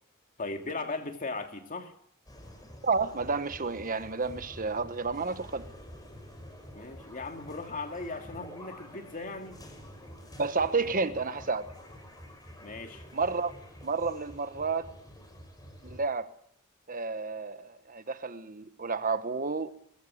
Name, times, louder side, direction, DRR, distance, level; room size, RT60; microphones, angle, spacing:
voice 1, 0.4-1.9 6.7-9.6 12.6-13.0, left 3 dB, 40° left, 2.7 m, -38 dB
sound 1, 2.3-16.0, equal, 20° left, 5.4 m, -48 dB
voice 2, 2.8-5.7 10.4-11.7 13.1-13.5 13.8-14.9 15.8-16.3 16.9-19.7, right 4 dB, 40° right, 1.3 m, -31 dB
20.5 x 16.5 x 8.8 m
head